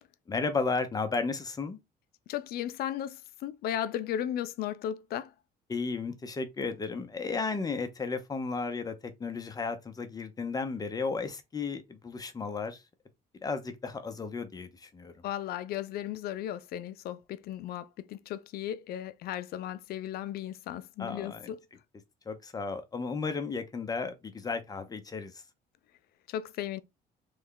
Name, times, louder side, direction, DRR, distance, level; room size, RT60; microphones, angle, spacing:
voice 1, 0.3-1.8 5.7-12.8 13.4-15.1 21.0-21.5 22.3-25.4, left 4 dB, 20° left, 0.7 m, -34 dB
voice 2, 2.3-5.3 15.2-21.6 26.3-26.8, left 11 dB, 65° left, 0.4 m, -35 dB
3.2 x 2.3 x 3.7 m
cardioid pair, 110°, 17 cm